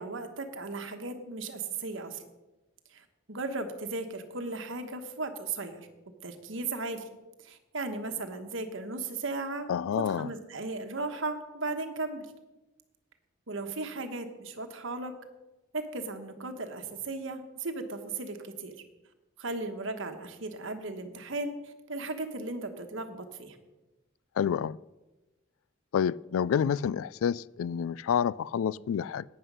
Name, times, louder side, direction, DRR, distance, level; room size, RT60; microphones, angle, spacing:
voice 1, 0.0-2.2 2.9-3.0 3.3-5.9 6.2-7.1 7.4-9.7 9.9-12.3 13.5-15.1 15.7-18.7 19.4-23.6, right 3 dB, 65° right, 1.2 m, -36 dB
voice 2, 9.7-10.3 24.4-24.8 25.9-29.3, left 8 dB, 75° left, 0.3 m, -28 dB
11.0 x 9.4 x 5.4 m
head